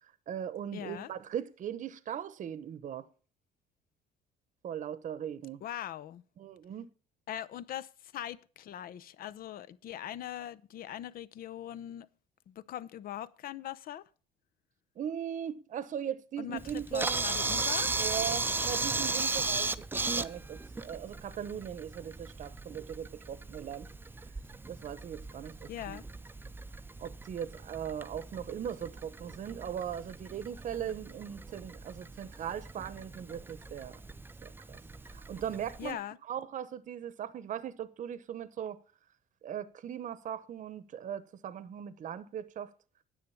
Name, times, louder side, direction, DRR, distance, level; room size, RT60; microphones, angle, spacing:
voice 1, 0.0-3.1 4.6-5.6 6.4-6.9 15.0-17.2 18.0-23.9 24.7-26.0 27.0-34.0 34.4-34.8 35.1-36.0 36.3-38.8 39.4-42.7, right 9 dB, 50° right, 0.9 m, -39 dB
voice 2, 0.7-1.1 5.6-6.2 7.3-12.1 12.5-14.0 16.4-18.0 25.7-26.0 35.8-36.2, left 11 dB, 60° left, 0.7 m, -41 dB
Camera, 16.6-35.9, right 3 dB, 10° right, 0.6 m, -37 dB
9.9 x 8.0 x 7.0 m
cardioid pair, 110°, 17 cm